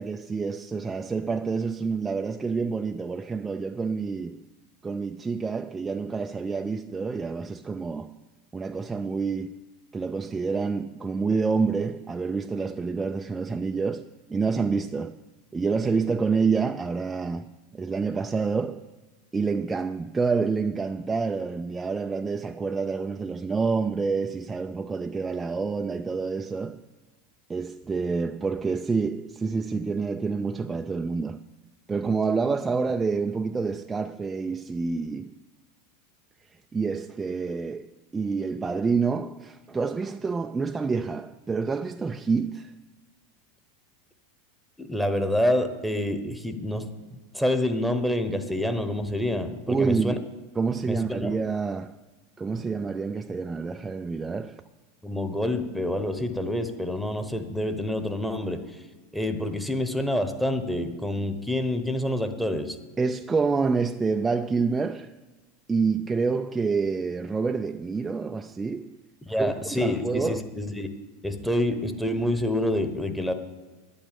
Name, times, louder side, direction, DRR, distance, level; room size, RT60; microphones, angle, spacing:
voice 1, 0.0-4.4 4.8-8.2 8.5-9.6 9.9-15.2 15.5-18.8 19.3-26.8 27.5-31.4 31.9-35.4 36.7-42.7 49.7-50.3 50.6-52.0 52.4-54.6 63.0-65.1 65.7-69.0 69.4-70.5, right 4 dB, 15° right, 0.4 m, -28 dB
voice 2, 44.8-50.1 50.9-51.4 55.0-58.6 59.1-62.8 69.3-70.9 71.2-73.3, left 1 dB, ahead, 1.1 m, -27 dB
10.0 x 8.8 x 6.9 m
hypercardioid pair, 95°, 0 cm